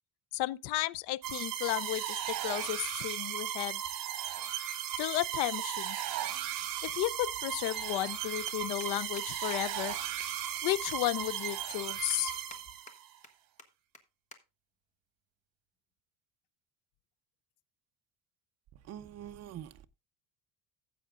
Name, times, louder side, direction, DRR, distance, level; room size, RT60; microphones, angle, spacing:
voice 1, 0.3-3.8 5.0-6.0 6.8-10.0 10.6-12.4, left 17 dB, 80° left, 0.6 m, -33 dB
sound 1, 1.2-13.1, right 10 dB, 55° right, 1.8 m, -36 dB
Alarm, 6.3-12.7, left 2 dB, 60° left, 3.4 m, -54 dB
sound 2, 8.1-8.2 8.5-8.9 9.2-9.3 9.5-9.6 9.9-10.0 10.2-10.6 10.9-11.0 11.5-11.6 12.1-12.6 12.9-13.3 13.6-13.7 13.9-14.0 14.3-14.4 14.7-15.0 15.7-16.0, left 3 dB, 20° left, 1.1 m, -50 dB
voice 2, 18.9-19.9, right 10 dB, 40° right, 0.6 m, -44 dB
15.5 x 7.8 x 2.4 m
cardioid pair, 170°, 39 cm